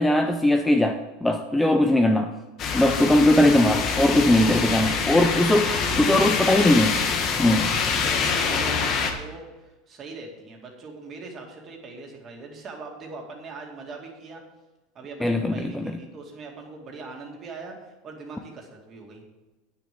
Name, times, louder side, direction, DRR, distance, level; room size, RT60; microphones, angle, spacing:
voice 1, 0.0-2.3 2.7-5.7 6.0-7.0 7.4-7.8 15.2-16.0, left 1 dB, 5° left, 6 dB, 0.5 m, -20 dB
sound 1, 2.6-9.1, left 5 dB, 40° left, 1.4 m, -25 dB
voice 2, 4.8-5.3 5.7-6.7 7.9-14.4 14.9-19.2, right 3 dB, 30° right, 1 dB, 2.3 m, -41 dB
9.5 x 6.7 x 6.8 m, 1.2 s
supercardioid pair, 140°, 0 cm